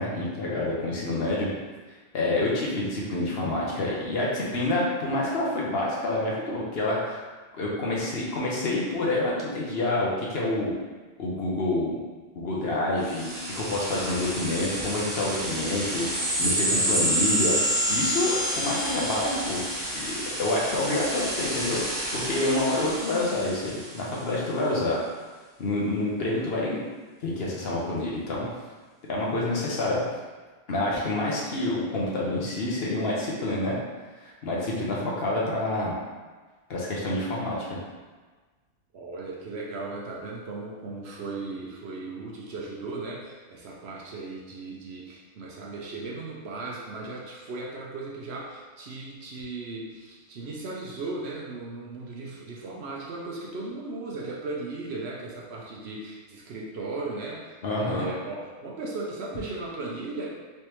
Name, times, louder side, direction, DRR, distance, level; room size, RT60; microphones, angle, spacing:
voice 1, 0.0-1.6 2.1-7.2 7.5-10.7 11.2-12.0 12.3-17.5 17.9-21.8 22.1-25.0 25.6-26.8 27.2-28.5 29.1-30.0 30.7-33.8 34.4-35.9 36.7-37.8 57.6-58.1, left 2 dB, 55° left, -5 dB, 0.9 m, -28 dB
sound 1, 13.0-24.1, right 1 dB, 25° right, 1.3 m, -29 dB
voice 2, 38.9-60.3, right 3 dB, 65° right, -2 dB, 0.8 m, -37 dB
3.4 x 3.2 x 2.9 m, 1.3 s
omnidirectional pair, 1.3 m